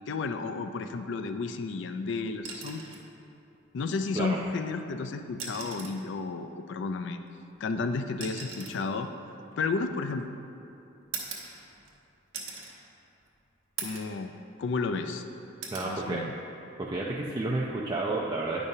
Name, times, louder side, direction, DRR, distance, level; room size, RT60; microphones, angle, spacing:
voice 1, 0.1-2.8 3.7-7.2 7.6-9.1 9.6-10.3 13.8-14.3 14.6-15.3 15.8-16.3, left 4 dB, 60° left, 8 dB, 0.3 m, -32 dB
sound 1, 2.4-3.1 4.5-4.6 5.3-6.1 7.2-10.3 11.1-12.0 12.3-12.8 13.2-13.3 13.8-14.2 14.6-15.2 15.6-15.9 17.4-17.6, right 5 dB, 75° right, 1.0 m, -41 dB
voice 2, 15.7-16.2 16.8-18.7, right 2 dB, 20° right, -3 dB, 0.4 m, -31 dB
9.6 x 5.2 x 2.7 m, 2.8 s
head